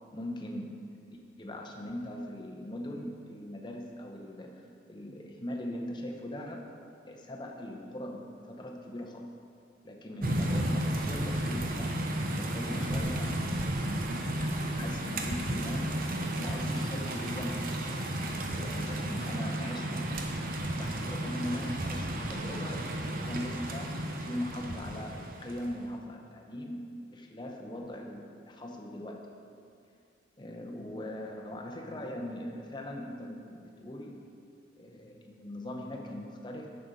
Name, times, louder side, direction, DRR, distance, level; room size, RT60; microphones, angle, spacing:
voice 1, 0.1-0.8 1.1-6.7 7.1-9.3 9.8-16.0 16.4-17.7 18.3-26.9 27.1-29.3 30.4-34.2 34.8-36.7, left 1 dB, 25° left, 1 dB, 0.7 m, -40 dB
sound 1, 10.2-25.8, right 1 dB, 45° right, 0.7 m, -33 dB
9.9 x 6.7 x 4.1 m, 2.4 s
head